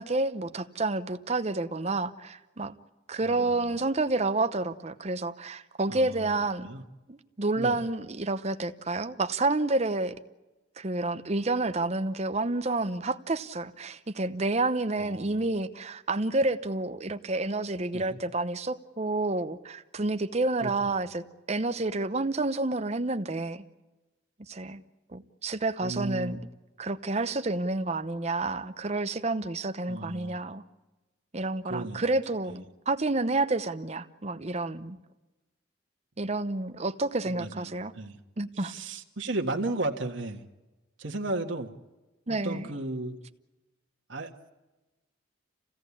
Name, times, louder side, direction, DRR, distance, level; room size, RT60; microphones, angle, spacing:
voice 1, 0.0-2.7 3.1-6.7 7.1-10.2 10.8-23.6 24.5-24.8 25.1-26.4 26.8-30.6 31.3-35.0 36.2-37.9 38.4-38.8 42.3-42.7, right 2 dB, 35° right, 10 dB, 0.8 m, -29 dB
voice 2, 3.2-3.8 5.9-6.3 6.6-6.8 7.6-7.8 15.0-15.5 17.9-18.2 20.6-21.0 25.8-26.4 29.9-30.4 31.6-32.0 32.5-32.6 37.3-38.2 38.6-40.4 41.0-41.7 42.4-43.2 44.1-44.3, right 2 dB, 80° right, 3 dB, 1.6 m, -35 dB
28.0 x 17.0 x 8.5 m, 1.1 s
head